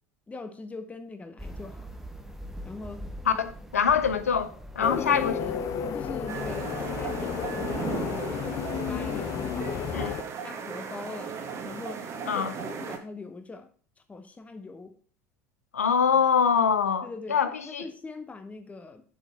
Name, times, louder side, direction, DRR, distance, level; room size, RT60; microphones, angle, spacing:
voice 1, 0.3-1.9 2.6-3.1 4.8-5.6 5.9-10.2 10.4-11.3 11.6-13.7 14.1-14.9 17.0-19.0, left 3 dB, 15° left, 1.3 m, -41 dB
sound 1, 1.4-8.1, equal, 5° right, 1.2 m, -44 dB
voice 2, 3.3-4.5 4.7-5.3 9.9-10.1 12.3-12.5 15.7-17.8, left 7 dB, 80° left, 0.8 m, -24 dB
sound 2, 4.8-10.2, left 7 dB, 40° left, 1.0 m, -32 dB
sound 3, 6.3-13.0, right 6 dB, 40° right, 1.6 m, -36 dB
7.5 x 6.5 x 4.4 m
figure-of-eight pair, 70°, 8 cm